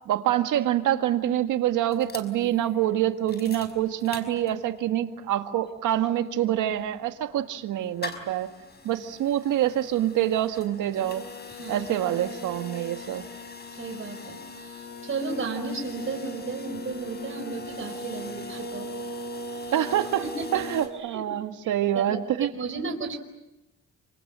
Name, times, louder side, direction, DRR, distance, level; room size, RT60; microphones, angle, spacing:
voice 1, 0.1-8.5 8.8-11.2 11.7-13.2 19.7-20.2 20.5-22.5, right 12 dB, 85° right, 7 dB, 2.0 m, -26 dB
sound 1, 1.9-4.9 5.3-5.4 5.6-20.9, left 1 dB, 35° left, 5.3 m, -40 dB
voice 2, 11.5-11.8 13.8-19.0 19.8-19.9 20.2-20.6 20.9-21.3 21.6-23.2, right 3 dB, 40° right, 3 dB, 4.9 m, -34 dB
29.5 x 26.5 x 7.6 m, 0.99 s
cardioid pair, 90°, 30 cm